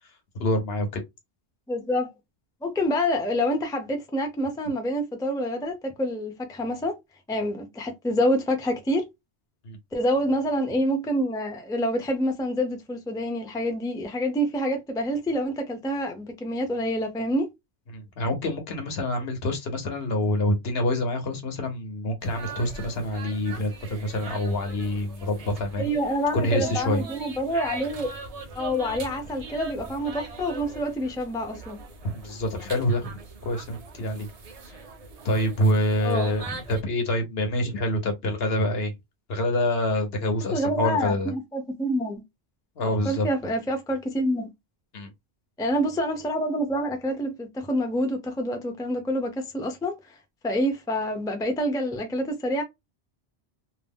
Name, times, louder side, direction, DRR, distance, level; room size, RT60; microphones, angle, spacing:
voice 1, 0.4-1.0 9.6-9.8 17.9-25.9 26.3-27.0 32.1-34.3 35.2-38.9 39.3-41.3 42.8-43.3 44.9-45.1, left 1 dB, 70° left, 1.0 m, -26 dB
voice 2, 1.7-2.1 2.6-7.0 7.3-9.0 9.9-17.5 25.8-28.2 28.5-31.8 36.0-36.6 40.5-42.2 43.0-44.5 45.6-50.0 50.4-52.6, equal, 5° left, 0.4 m, -27 dB
sound 1, 22.2-36.8, right 3 dB, 45° right, 0.6 m, -41 dB
2.6 x 2.0 x 3.5 m
omnidirectional pair, 1.1 m